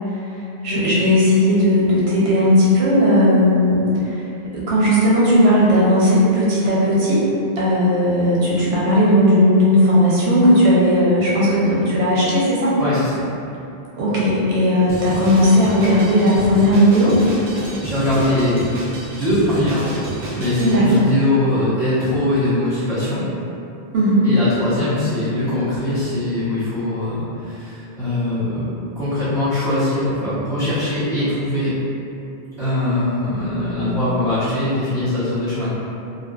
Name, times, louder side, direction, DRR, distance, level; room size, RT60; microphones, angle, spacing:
voice 1, 0.6-4.3 4.5-7.2 7.6-12.7 14.0-17.2 20.6-21.0 23.9-24.3, equal, 85° right, -7 dB, 0.9 m, -16 dB
voice 2, 12.8-13.2 17.8-18.7 19.0-19.9 20.4-23.3 24.2-28.7 28.9-31.7 32.6-35.7, left 1 dB, 5° left, -16 dB, 1.0 m, -21 dB
Drum kit, 14.9-20.8, right 1 dB, 55° right, 0.6 m, -30 dB
2.5 x 2.2 x 2.2 m, 2.7 s
omnidirectional pair, 1.0 m